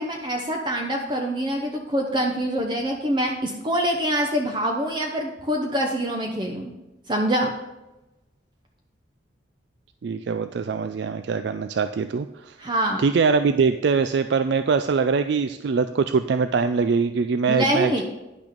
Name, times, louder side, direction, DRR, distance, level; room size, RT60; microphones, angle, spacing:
voice 1, 0.0-6.7 7.1-7.5 12.6-13.0 17.5-18.0, right 1 dB, 25° right, 1 dB, 0.8 m, -25 dB
voice 2, 10.0-12.6 13.0-18.0, right 5 dB, 60° right, 10 dB, 0.3 m, -23 dB
10.5 x 6.1 x 5.1 m, 0.99 s
head